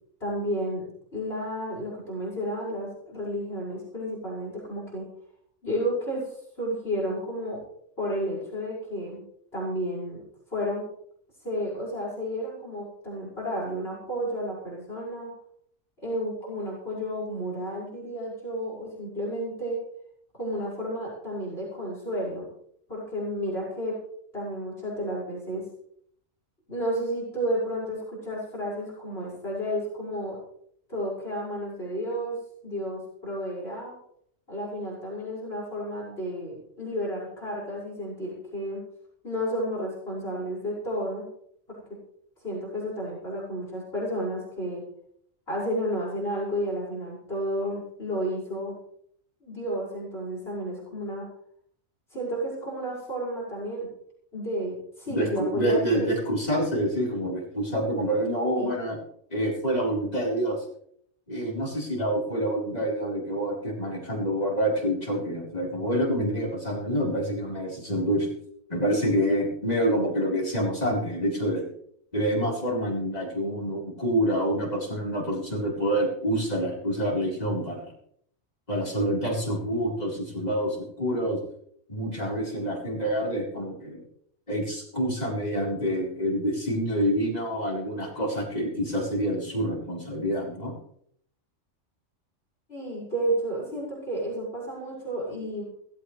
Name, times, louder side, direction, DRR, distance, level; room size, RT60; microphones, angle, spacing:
voice 1, 0.2-0.8 1.1-5.0 5.6-7.6 8.0-9.2 9.5-10.2 10.5-10.8 11.4-15.3 16.0-19.8 20.3-22.5 22.9-24.0 24.3-25.6 26.7-30.4 30.9-33.9 34.5-38.8 39.2-41.3 41.7-41.8 42.4-44.8 45.5-48.7 49.4-51.3 52.1-53.9 54.3-56.1 58.6-58.7 92.7-95.6, equal, 45° left, -5 dB, 6.3 m, -32 dB
voice 2, 55.1-59.0 59.3-60.6 61.3-68.3 68.7-71.6 72.1-77.9 78.7-81.4 81.9-84.0 84.5-90.7, equal, 30° left, -3 dB, 4.6 m, -27 dB
17.0 x 16.5 x 3.3 m, 0.66 s
omnidirectional pair, 1.4 m